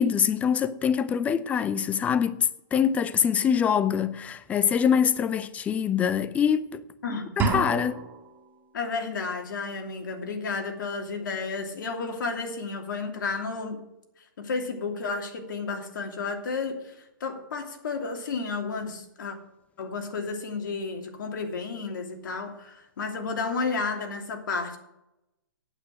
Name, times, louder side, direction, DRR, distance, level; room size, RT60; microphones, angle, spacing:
voice 1, 0.0-6.8 7.4-8.1, left 7 dB, 10° left, 0.5 m, -24 dB
sound 1, 7.4-8.4, right 4 dB, 15° right, 1.9 m, -28 dB
voice 2, 8.7-13.8 14.4-16.9 17.2-19.4 19.8-24.8, left 4 dB, 70° left, 2.9 m, -32 dB
9.0 x 8.2 x 9.1 m
hypercardioid pair, 145°, 11 cm